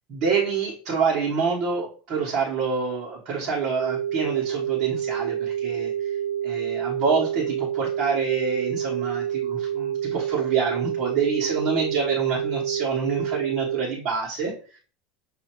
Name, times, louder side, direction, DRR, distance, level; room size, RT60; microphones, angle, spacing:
voice 1, 0.1-6.2 6.4-14.8, right 5 dB, 35° right, -5 dB, 1.2 m, -27 dB
sound 1, 3.8-13.8, right 9 dB, 65° right, 1.3 m, -28 dB
6.5 x 2.7 x 3.0 m, 0.38 s
supercardioid pair, 170°, 0 cm